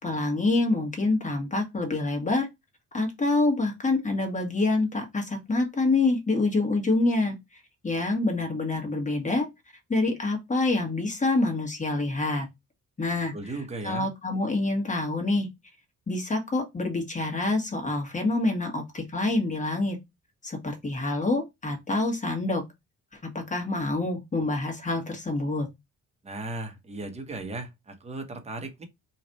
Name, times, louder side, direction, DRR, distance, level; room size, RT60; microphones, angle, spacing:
voice 1, 0.0-2.5 2.9-7.3 7.8-9.5 9.9-12.5 13.0-13.3 13.8-15.5 16.1-20.0 20.4-22.6 23.3-25.7, left 2 dB, 25° left, 1.5 m, -26 dB
voice 2, 13.3-14.1 26.2-28.8, right 2 dB, 20° right, 1.0 m, -36 dB
3.1 x 2.5 x 4.0 m
cardioid pair, 90°, 30 cm